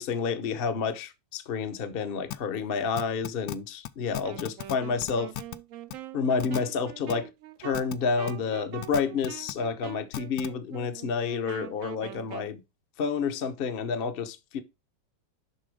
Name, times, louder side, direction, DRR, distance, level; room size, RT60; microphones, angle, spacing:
voice 1, 0.0-5.3 6.1-7.3 7.6-12.6 13.0-14.6, left 5 dB, 40° left, 0.9 m, -29 dB
sound 1, 2.3-2.4 3.0-3.6 3.8-3.9 4.1-4.7 5.0-5.6 5.9-6.0 6.4-6.6 7.1-7.2 7.7-7.9 8.3-8.4 8.8-9.5 10.1-10.5, left 13 dB, 70° left, 1.0 m, -34 dB
Wind instrument woodwind instrument, 4.2-12.6, right 11 dB, 65° right, 0.8 m, -44 dB
11.0 x 3.8 x 5.0 m
omnidirectional pair, 1.9 m